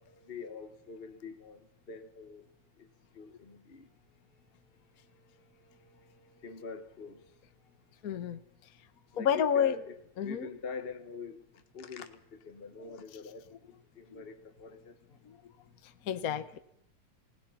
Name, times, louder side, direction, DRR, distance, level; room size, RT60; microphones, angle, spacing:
voice 1, 0.0-2.5 2.8-2.9 3.1-3.9 5.2-7.3 9.1-11.4 11.7-13.4 13.9-14.9, left 5 dB, 35° left, 7 dB, 0.9 m, -45 dB
voice 2, 8.0-8.4 9.2-9.7 10.2-10.5 14.1-14.3 15.3-15.4 16.1-16.6, left 8 dB, 70° left, 10 dB, 0.8 m, -29 dB
30.0 x 17.5 x 5.8 m, 0.71 s
omnidirectional pair, 3.4 m